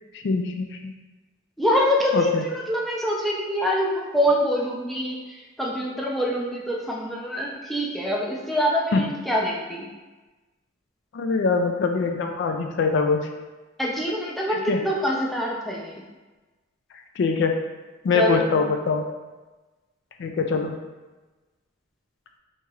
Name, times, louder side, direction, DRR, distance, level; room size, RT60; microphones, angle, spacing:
voice 1, 0.2-0.8 2.1-2.4 8.9-9.0 11.1-13.3 14.5-14.8 17.2-17.5 18.0-19.0 20.2-20.8, left 4 dB, 60° left, 4 dB, 0.3 m, -23 dB
voice 2, 1.6-2.3 2.7-5.2 5.6-9.9 13.8-16.0 18.1-18.5, equal, ahead, -3 dB, 0.4 m, -25 dB
4.5 x 2.8 x 2.4 m, 1.2 s
head